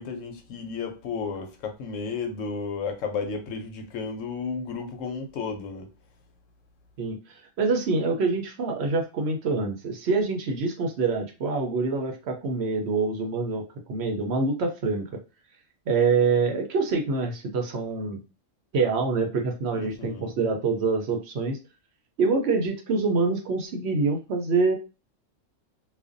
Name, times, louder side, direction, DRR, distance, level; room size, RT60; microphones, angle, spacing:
voice 1, 0.0-5.9 19.7-20.2, left 5 dB, 85° left, 1.0 m, -33 dB
voice 2, 7.0-15.2 15.9-18.2 18.7-21.6 22.2-24.8, right 4 dB, 65° right, 0.8 m, -26 dB
2.4 x 2.2 x 2.5 m
omnidirectional pair, 1.3 m